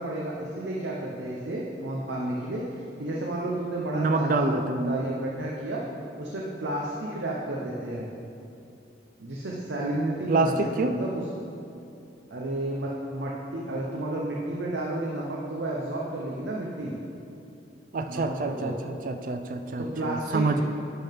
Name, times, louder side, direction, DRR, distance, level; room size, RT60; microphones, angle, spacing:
voice 1, 0.0-2.6 3.0-5.8 6.2-8.1 9.2-11.2 12.3-16.9 18.1-18.7 19.8-20.6, right 1 dB, 80° right, -3 dB, 0.8 m, -31 dB
voice 2, 3.9-5.1 10.3-11.0 17.9-20.6, right 3 dB, 50° right, 7 dB, 0.4 m, -27 dB
11.0 x 5.5 x 3.6 m, 2.7 s
head